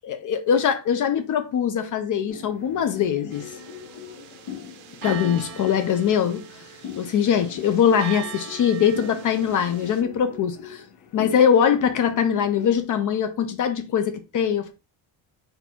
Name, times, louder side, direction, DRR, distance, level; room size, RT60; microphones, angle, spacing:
voice 1, 0.0-3.5 5.0-6.4 7.0-10.8 11.1-14.7, left 8 dB, 40° left, 0.4 m, -22 dB
sound 1, 2.3-12.8, left 9 dB, 60° left, 1.0 m, -41 dB
sound 2, 3.3-10.0, right 10 dB, 70° right, 0.9 m, -41 dB
4.3 x 2.6 x 4.2 m
cardioid pair, 175°, 49 cm